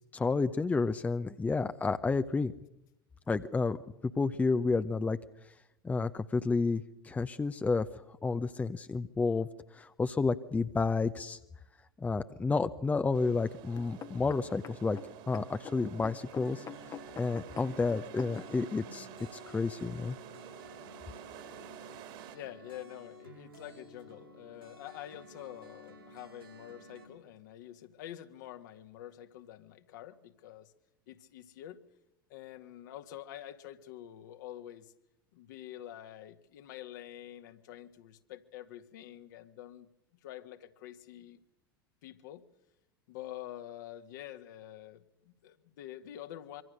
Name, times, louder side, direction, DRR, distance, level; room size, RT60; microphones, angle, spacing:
voice 1, 0.1-2.5 3.3-5.2 5.8-7.9 8.2-9.5 9.7-11.4 12.0-15.0 15.3-19.1 19.5-20.2, left 4 dB, 15° left, 10 dB, 0.9 m, -30 dB
sound 1, 13.1-22.4, right 10 dB, 50° right, 3.0 m, -50 dB
sound 2, 13.8-18.6 19.3-19.4, left 9 dB, 30° left, 1.3 m, -46 dB
sound 3, 16.4-27.1, equal, 85° right, 7.5 m, -53 dB
voice 2, 22.3-30.7 31.1-31.8 32.3-34.9 35.3-39.9 40.2-41.4 42.0-42.4 43.1-46.6, left 12 dB, 60° left, 7 dB, 1.9 m, -47 dB
25.5 x 24.5 x 6.6 m, 0.88 s
figure-of-eight pair, 80°, 12 cm